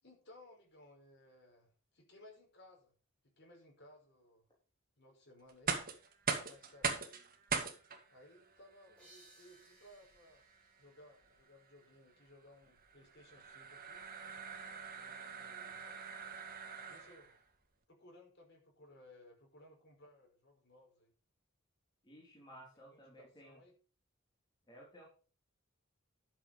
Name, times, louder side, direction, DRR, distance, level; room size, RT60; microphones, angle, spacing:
voice 1, 0.0-2.9 3.2-4.5 5.0-5.8 6.3-7.2 8.1-10.5 10.8-14.0 14.9-15.9 16.9-17.4 17.9-21.1 22.7-23.8, left 1 dB, 55° left, 0 dB, 5.2 m, -61 dB
sound 1, 5.5-17.4, right 5 dB, 45° right, 2.2 m, -42 dB
sound 2, 9.0-12.4, right 1 dB, 5° left, 5.7 m, -66 dB
voice 2, 22.0-23.6 24.7-25.1, equal, 20° left, -3 dB, 3.4 m, -56 dB
11.5 x 7.2 x 5.3 m, 0.37 s
head